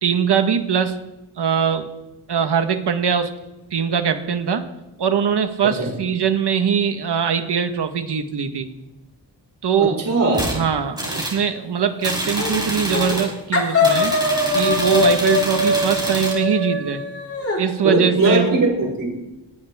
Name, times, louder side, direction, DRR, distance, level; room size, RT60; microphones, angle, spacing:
voice 1, 0.0-1.0 1.4-1.9 2.3-3.3 3.7-4.7 5.0-8.7 9.6-10.0 10.5-14.2 14.5-17.0 17.6-18.7, right 7 dB, 65° right, 7 dB, 1.6 m, -21 dB
voice 2, 9.8-10.5 17.8-19.1, right 2 dB, 50° right, -1 dB, 5.3 m, -19 dB
sound 1, 10.3-10.6 11.0-11.4 12.0-13.3 13.8-16.4, right 1 dB, 10° right, 4.1 m, -26 dB
sound 2, 12.4-12.6 12.9-13.2 13.5-17.6, left 2 dB, 30° left, 3.3 m, -21 dB
21.0 x 18.0 x 3.7 m, 0.99 s
wide cardioid pair, 165°, 43 cm